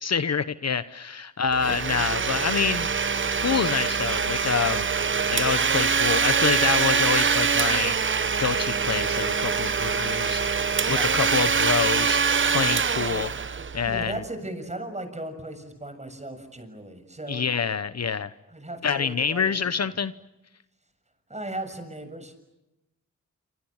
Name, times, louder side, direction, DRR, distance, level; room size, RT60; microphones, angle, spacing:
voice 1, 0.0-2.9 3.4-4.9 5.3-8.0 8.4-10.4 10.9-12.2 12.5-13.3 13.7-14.2 17.3-18.3 18.8-20.1, left 6 dB, 50° left, 13 dB, 1.0 m, -27 dB
Domestic sounds home sounds, 1.5-14.1, right 5 dB, 35° right, 0.9 m, -24 dB
voice 2, 13.9-17.4 18.5-19.5 21.3-22.3, right 1 dB, 20° right, 8 dB, 7.0 m, -36 dB
27.5 x 27.0 x 7.4 m, 0.95 s
cardioid pair, 65°, 33 cm